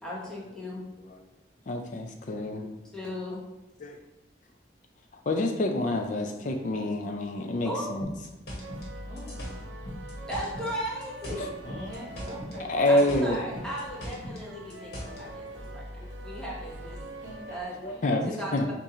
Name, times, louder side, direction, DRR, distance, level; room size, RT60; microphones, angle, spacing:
voice 1, 0.0-0.8 2.9-3.4 7.6-7.9 10.3-11.5 12.9-17.0 17.5-17.7 18.2-18.7, equal, 5° left, -6 dB, 0.9 m, -36 dB
voice 2, 1.7-2.7 3.8-4.0 5.3-8.1 11.4-11.5 12.7-13.4 16.3-16.4 17.8-18.6, left 1 dB, 45° left, 4 dB, 0.4 m, -27 dB
sound 1, 8.0-10.7 11.0-12.6 12.8-15.2, equal, 60° left, 1.2 m, -39 dB
sound 2, 8.6-17.6, right 1 dB, 90° right, 0.6 m, -43 dB
voice 3, 9.0-9.4 11.6-13.0 17.2-18.2, equal, 45° right, -5 dB, 1.5 m, -44 dB
6.9 x 2.5 x 2.8 m, 1.0 s
head